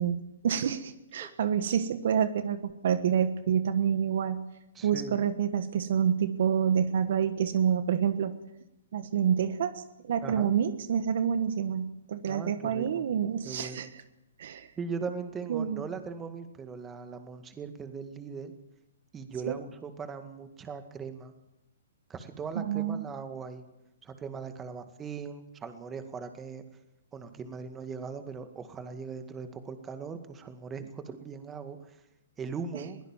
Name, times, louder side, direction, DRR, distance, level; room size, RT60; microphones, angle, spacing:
voice 1, 0.0-4.4 4.8-8.4 8.9-13.9 14.4-14.7 15.5-15.8 19.5-19.6 22.5-23.0, right 8 dB, 60° right, 12 dB, 1.4 m, -28 dB
voice 2, 4.8-5.2 10.2-10.5 12.3-13.0 13.4-13.9 14.8-18.5 19.1-21.3 22.1-23.6 24.0-26.6 27.1-32.0 32.4-33.0, right 5 dB, 15° right, 8 dB, 2.0 m, -39 dB
22.0 x 16.5 x 7.4 m, 0.91 s
hypercardioid pair, 130°, 0 cm